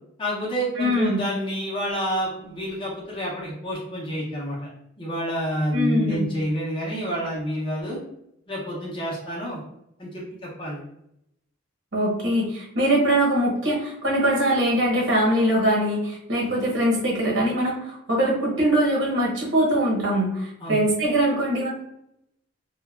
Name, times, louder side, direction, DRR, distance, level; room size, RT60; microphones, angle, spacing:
voice 1, 0.2-4.7 5.0-8.0 8.5-9.6 10.0-10.8 16.4-16.5 20.6-20.8, equal, 25° left, -6 dB, 0.6 m, -28 dB
voice 2, 0.8-1.2 5.7-6.3 11.9-21.7, right 1 dB, 65° right, -3 dB, 1.0 m, -22 dB
2.8 x 2.2 x 2.3 m, 0.80 s
head